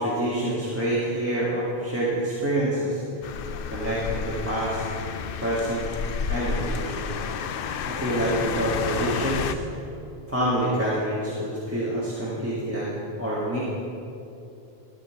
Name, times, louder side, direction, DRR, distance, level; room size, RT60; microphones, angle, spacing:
voice 1, 0.0-3.0 3.7-4.8 5.4-5.9 6.3-7.1 7.9-9.6 10.3-12.9 13.2-13.6, right 1 dB, 15° right, -8 dB, 1.6 m, -27 dB
sound 1, 3.2-9.5, left 6 dB, 65° left, 0.7 m, -31 dB
13.0 x 5.2 x 7.6 m, 2.6 s
omnidirectional pair, 1.1 m